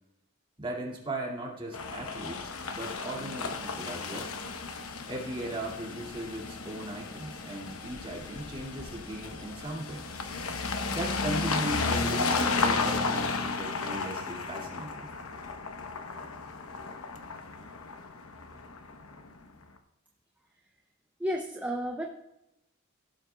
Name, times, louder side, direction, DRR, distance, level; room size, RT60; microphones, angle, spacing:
voice 1, 0.6-4.3 5.1-10.0 10.9-15.1, right 1 dB, 25° right, -2 dB, 2.4 m, -38 dB
sound 1, 1.7-19.4, left 4 dB, 80° left, 1.0 m, -33 dB
voice 2, 21.2-22.1, equal, 5° right, 1 dB, 0.6 m, -32 dB
16.5 x 7.8 x 2.3 m, 0.87 s
head